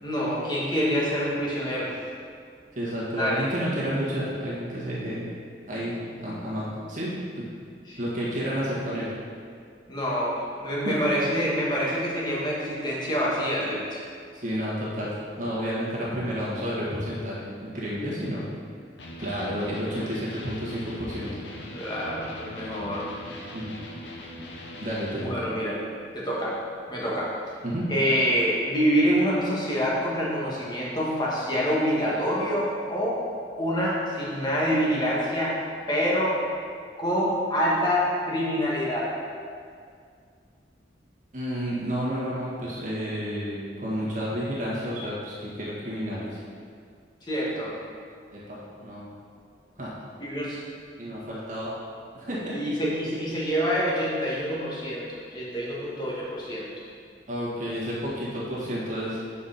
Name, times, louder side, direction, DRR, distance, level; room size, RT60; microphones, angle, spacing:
voice 1, 0.0-1.9 3.2-3.4 7.9-8.0 9.9-14.0 21.7-23.1 25.2-25.8 26.1-26.6 26.9-27.3 27.9-33.2 33.6-35.6 35.9-36.4 37.0-39.1 47.2-47.7 50.2-50.6 52.5-56.7, equal, 25° left, -6 dB, 1.4 m, -26 dB
voice 2, 2.7-5.2 5.7-7.5 8.0-9.1 10.8-10.9 14.4-18.5 19.2-21.4 23.5-23.8 24.8-25.4 27.6-27.8 41.3-46.4 48.3-49.1 49.8-49.9 51.0-51.7 52.1-52.6 57.3-59.2, equal, 45° right, -7 dB, 1.6 m, -31 dB
Electric guitar, 19.0-25.4, left 1 dB, 85° left, 0.8 m, -41 dB
5.6 x 4.6 x 5.8 m, 2.2 s
head